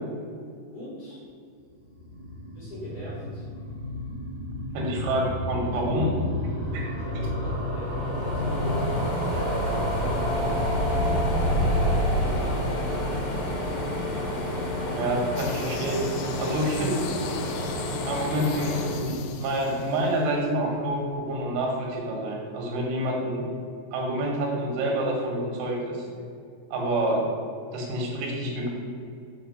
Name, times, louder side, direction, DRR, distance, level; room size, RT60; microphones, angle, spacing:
voice 1, 0.7-1.2 2.5-3.5 5.0-5.1 7.1-13.1, equal, 70° left, -8 dB, 1.9 m, -40 dB
sound 1, 1.9-15.0 15.2-15.3 15.5-15.6 15.8-15.9, equal, 65° right, 1.5 m, -29 dB
voice 2, 4.8-6.2 6.7-6.8 14.9-16.0 16.4-17.0 18.1-23.4 23.9-26.1 26.7-27.3 27.7-28.7, right 1 dB, 90° right, -1 dB, 4.0 m, -27 dB
sound 2, 6.9-7.0 7.2-19.8 20.3-21.4, left 1 dB, 50° left, 2.6 m, -31 dB
sound 3, 15.4-20.5, left 10 dB, 90° left, 2.6 m, -42 dB
7.4 x 3.7 x 6.2 m, 2.4 s
omnidirectional pair, 5.9 m